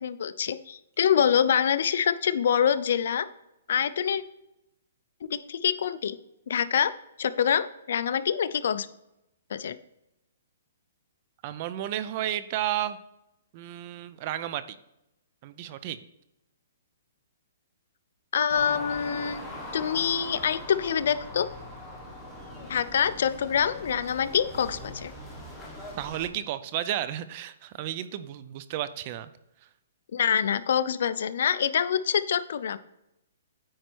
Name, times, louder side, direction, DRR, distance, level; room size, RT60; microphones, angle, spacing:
voice 1, 0.0-3.3 3.7-4.2 5.2-6.2 6.5-6.9 7.2-8.9 9.5-9.8 18.3-19.4 19.7-21.5 22.7-25.1 30.1-32.8, left 8 dB, 60° left, 12 dB, 0.5 m, -25 dB
voice 2, 11.4-13.0 13.5-14.8 15.4-16.0 26.0-29.3, right 12 dB, 35° right, 14 dB, 0.4 m, -32 dB
sound 1, 18.5-26.3, left 1 dB, 5° left, 1.4 m, -41 dB
9.3 x 4.5 x 4.5 m, 0.86 s
hypercardioid pair, 160°, 0 cm